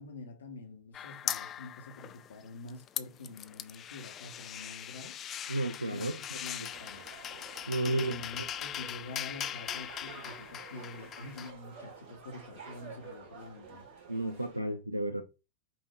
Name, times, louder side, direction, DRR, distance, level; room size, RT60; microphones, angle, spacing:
voice 1, 0.0-5.2 5.9-7.0 7.8-13.9, left 2 dB, 65° left, 1.0 m, -46 dB
sound 1, 0.9-2.4 2.7-11.5, left 10 dB, 30° left, 0.3 m, -40 dB
voice 2, 5.5-6.1 7.7-8.1 14.1-15.2, right 1 dB, 85° right, 0.4 m, -32 dB
sound 2, 6.7-14.6, right 5 dB, 50° right, 1.6 m, -50 dB
5.4 x 2.7 x 3.2 m
figure-of-eight pair, 90°, 0 cm